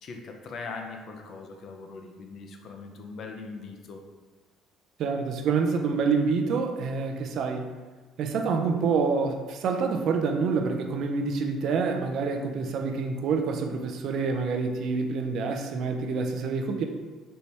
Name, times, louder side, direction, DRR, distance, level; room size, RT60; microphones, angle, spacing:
voice 1, 0.0-4.0, left 4 dB, 45° left, 3 dB, 0.5 m, -40 dB
voice 2, 5.0-7.7 8.2-16.8, right 4 dB, 55° right, 5 dB, 0.4 m, -27 dB
4.3 x 3.3 x 2.8 m, 1.3 s
cardioid pair, 145°, 0 cm